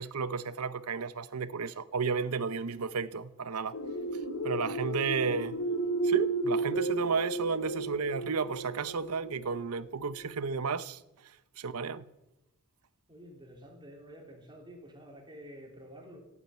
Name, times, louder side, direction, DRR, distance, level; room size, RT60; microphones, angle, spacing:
voice 1, 0.0-3.8 4.4-5.6 6.0-11.0 11.6-12.0, right 5 dB, 80° right, 0.7 m, -32 dB
sound 1, 3.7-10.3, right 2 dB, 65° left, 2.1 m, -33 dB
voice 2, 13.1-16.2, equal, 20° right, 3.5 m, -49 dB
15.0 x 8.7 x 9.1 m
head